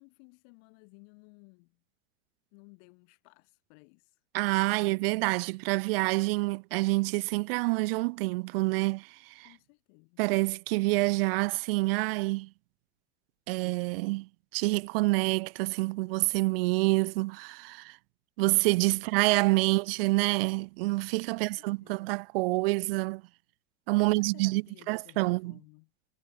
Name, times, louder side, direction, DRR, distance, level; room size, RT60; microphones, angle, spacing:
voice 1, 0.0-1.8 2.5-4.2 9.4-10.2 18.9-19.0 21.3-22.2 24.0-25.9, left 40 dB or more, 55° left, 4.5 m, -57 dB
voice 2, 4.3-9.5 10.2-12.5 13.5-18.0 18.4-23.2 23.9-24.6 24.9-25.6, right 24 dB, 65° right, 0.5 m, -27 dB
supercardioid pair, 160°, 31 cm